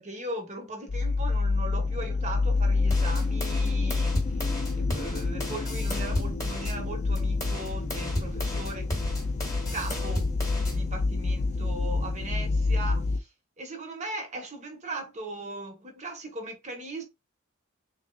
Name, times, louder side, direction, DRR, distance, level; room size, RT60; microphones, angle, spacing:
voice 1, 0.0-4.4 4.8-8.9 9.7-10.3 10.6-13.3 13.6-17.0, right 2 dB, 35° right, 1.0 m, -38 dB
sound 1, 0.9-13.2, left 3 dB, 35° left, 0.4 m, -28 dB
sound 2, 2.9-6.8 7.2-10.8, left 1 dB, 15° left, 1.2 m, -35 dB
3.8 x 3.3 x 2.3 m
head